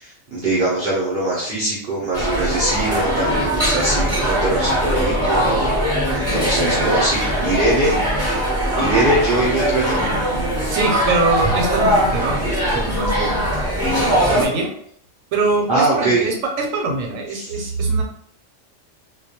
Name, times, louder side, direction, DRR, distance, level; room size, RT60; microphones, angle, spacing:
voice 1, 0.0-5.4 6.1-8.0 8.8-10.0 15.7-16.3 17.3-17.7, right 2 dB, 55° right, -5 dB, 0.7 m, -22 dB
sound 1, 2.1-14.5, equal, 15° right, 0.6 m, -20 dB
voice 2, 10.7-13.5 13.7-14.7 15.3-18.0, right 3 dB, 85° right, 2 dB, 1.0 m, -23 dB
2.2 x 2.1 x 2.8 m, 0.65 s
omnidirectional pair, 1.3 m